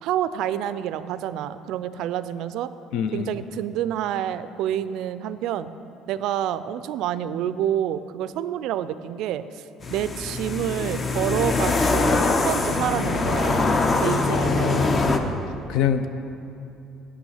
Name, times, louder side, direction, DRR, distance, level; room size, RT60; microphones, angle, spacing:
voice 1, 0.0-2.7 3.1-5.7 6.1-9.6 9.9-13.7 14.0-15.0, right 10 dB, 70° right, 14 dB, 0.3 m, -28 dB
voice 2, 2.9-3.3 14.3-15.3 15.6-16.1, left 9 dB, 75° left, 10 dB, 0.5 m, -26 dB
sound 1, 9.8-15.2, left 3 dB, 35° left, 0.7 m, -23 dB
8.2 x 6.1 x 7.2 m, 2.7 s
supercardioid pair, 80°, 0 cm